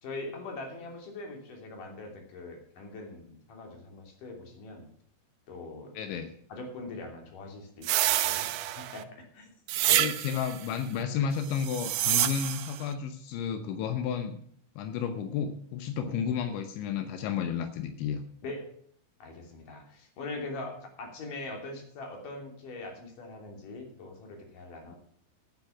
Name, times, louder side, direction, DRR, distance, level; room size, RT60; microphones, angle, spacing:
voice 1, 0.0-4.9 5.5-6.2 6.5-8.5 8.7-9.5 9.9-10.2 16.0-16.2 18.4-18.7 19.2-25.0, left 2 dB, 50° left, 2 dB, 4.3 m, -42 dB
voice 2, 6.0-6.3 10.0-14.4 14.8-18.2, left 7 dB, 85° left, 8 dB, 3.3 m, -32 dB
sound 1, 7.8-9.0 9.7-10.6 11.5-12.8, right 13 dB, 75° right, 2.5 m, -27 dB
10.5 x 10.5 x 6.0 m, 0.63 s
omnidirectional pair, 5.3 m